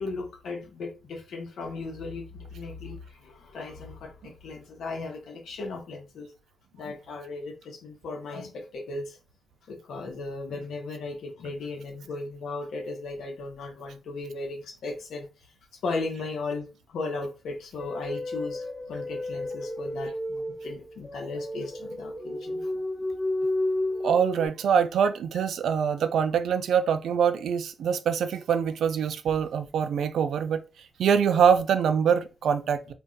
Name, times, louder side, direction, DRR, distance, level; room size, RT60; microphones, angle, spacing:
voice 1, 0.0-6.3 6.7-9.2 9.7-15.3 15.8-22.8, left 3 dB, 85° left, 1.0 m, -36 dB
sound 1, 17.8-24.5, left 1 dB, 20° left, 0.4 m, -32 dB
voice 2, 24.0-30.6 31.0-32.9, right 7 dB, 80° right, 0.3 m, -24 dB
2.5 x 2.2 x 3.8 m
cardioid pair, 80°, 0 cm